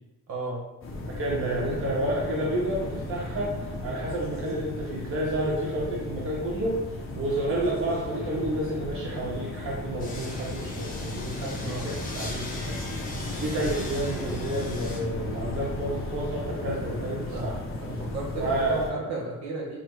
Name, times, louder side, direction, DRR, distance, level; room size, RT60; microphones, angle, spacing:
voice 1, 0.3-0.6 1.7-1.8 10.0-10.1 11.6-11.9 17.3-17.5 17.8-19.8, right 2 dB, 60° right, -3 dB, 1.5 m, -34 dB
sound 1, 0.8-18.9, left 2 dB, 45° left, 0.9 m, -35 dB
voice 2, 1.1-3.5 3.8-6.8 7.1-12.7 13.4-17.6 18.4-19.0, right 1 dB, 45° right, -5 dB, 1.0 m, -30 dB
sound 2, 10.0-15.0, left 2 dB, 30° left, 1.1 m, -41 dB
6.0 x 2.2 x 3.1 m, 1.1 s
cardioid pair, 90°, 30 cm